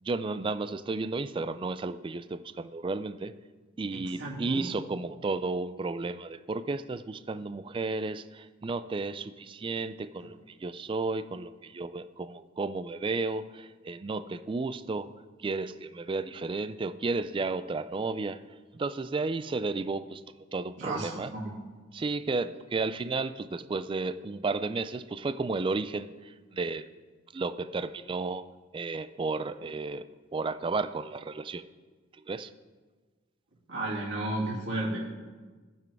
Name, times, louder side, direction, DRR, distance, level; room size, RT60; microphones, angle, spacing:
voice 1, 0.0-3.4 3.8-15.1 15.4-18.4 18.7-20.2 20.5-21.3 21.9-26.9 27.3-28.5 28.7-31.7 32.1-32.5, right 3 dB, 25° right, 12 dB, 0.3 m, -33 dB
voice 2, 3.9-4.7 20.8-21.5 33.7-35.0, right 2 dB, 65° right, -6 dB, 2.4 m, -33 dB
17.5 x 6.0 x 3.5 m, 1.4 s
head